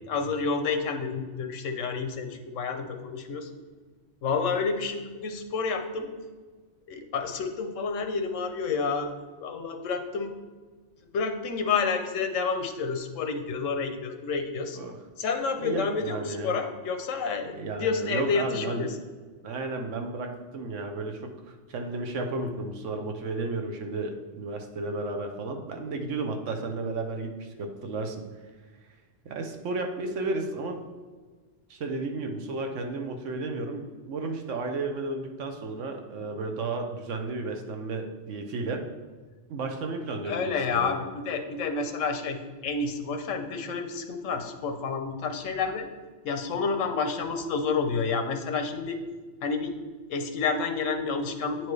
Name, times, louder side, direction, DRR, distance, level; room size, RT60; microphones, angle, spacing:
voice 1, 0.1-3.5 4.2-6.1 6.9-9.1 9.4-10.3 11.1-14.8 15.2-17.5 17.8-18.9 40.2-45.9 46.2-49.0 49.4-49.7 50.1-51.7, left 5 dB, 80° left, 6 dB, 1.1 m, -29 dB
voice 2, 15.6-16.6 17.5-18.9 19.4-28.2 29.2-30.8 31.7-38.8 39.5-40.9, right 3 dB, 75° right, 4 dB, 1.1 m, -33 dB
9.1 x 4.5 x 3.2 m, 1.4 s
omnidirectional pair, 1.3 m